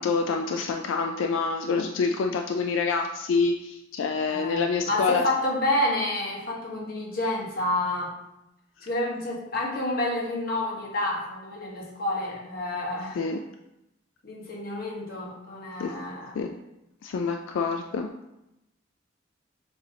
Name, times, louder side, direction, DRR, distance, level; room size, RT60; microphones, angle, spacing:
voice 1, 0.0-5.2 13.2-13.4 15.8-15.9 16.3-16.5 17.0-18.1, left 4 dB, 85° left, 3 dB, 0.3 m, -26 dB
voice 2, 4.3-8.1 8.8-13.2 14.2-16.5, left 1 dB, 50° left, -3 dB, 1.0 m, -29 dB
7.1 x 2.6 x 2.7 m, 0.90 s
head